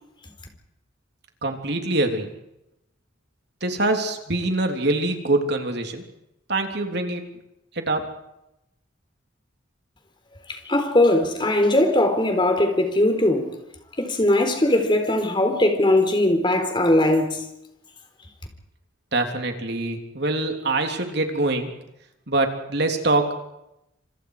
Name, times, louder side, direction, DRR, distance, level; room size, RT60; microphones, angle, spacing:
voice 1, 1.4-2.3 3.6-6.0 6.5-7.2 7.7-8.1 19.1-21.7 22.3-23.5, right 2 dB, 60° right, 3.4 m, -24 dB
voice 2, 10.5-13.5 14.0-17.4, left 1 dB, 25° left, 4.0 m, -20 dB
28.0 x 27.0 x 5.0 m
head